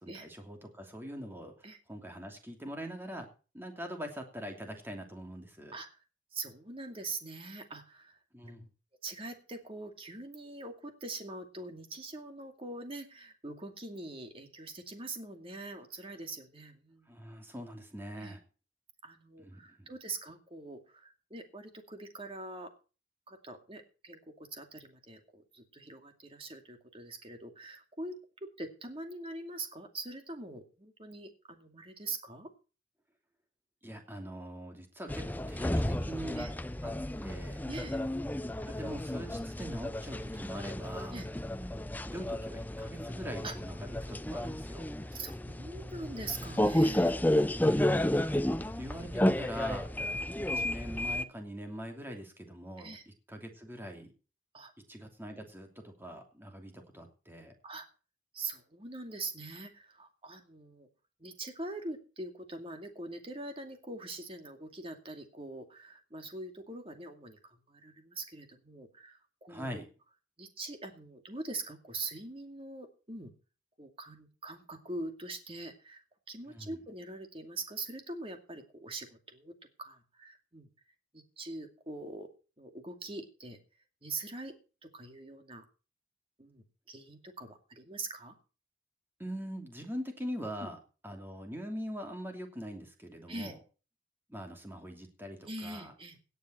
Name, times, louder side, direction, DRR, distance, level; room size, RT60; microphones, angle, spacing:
voice 1, 0.0-1.5 1.9-3.3 3.5-5.8 8.3-8.6 17.1-18.4 19.4-19.9 33.8-36.5 36.8-36.9 37.2-37.6 38.6-41.2 42.0-44.9 47.5-48.5 48.8-49.9 50.3-54.1 54.9-57.5 69.5-69.9 76.5-76.8 89.2-90.8 91.0-93.6 94.3-95.9, equal, 10° right, 4 dB, 2.8 m, -42 dB
voice 2, 6.3-8.7 9.0-17.1 18.2-18.3 19.0-22.7 23.3-28.2 28.6-32.5 36.3-36.5 37.6-38.0 41.1-41.3 43.4-43.5 45.1-47.2 49.0-49.1 52.8-53.0 54.5-54.7 57.6-57.9 58.3-60.9 61.2-69.8 70.4-73.3 73.8-76.0 76.3-80.7 81.1-82.3 82.6-83.6 84.0-84.5 84.8-85.7 86.4-88.4 90.6-90.7 93.3-93.5 95.4-96.2, right 2 dB, 30° right, 6 dB, 2.4 m, -43 dB
sound 1, 35.1-51.2, left 1 dB, 10° left, 0.5 m, -32 dB
17.5 x 9.4 x 4.5 m, 0.35 s
head